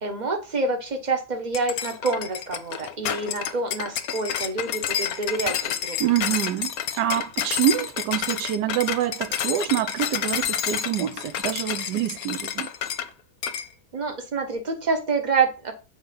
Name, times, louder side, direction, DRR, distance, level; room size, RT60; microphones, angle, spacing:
voice 1, 0.0-6.0 13.9-15.7, right 4 dB, 30° right, 1.3 m, -27 dB
sound 1, 1.5-13.1 13.4-13.7, left 9 dB, 65° left, 1.0 m, -29 dB
voice 2, 6.0-12.7, right 11 dB, 75° right, 1.2 m, -26 dB
7.2 x 3.5 x 5.3 m
omnidirectional pair, 1.8 m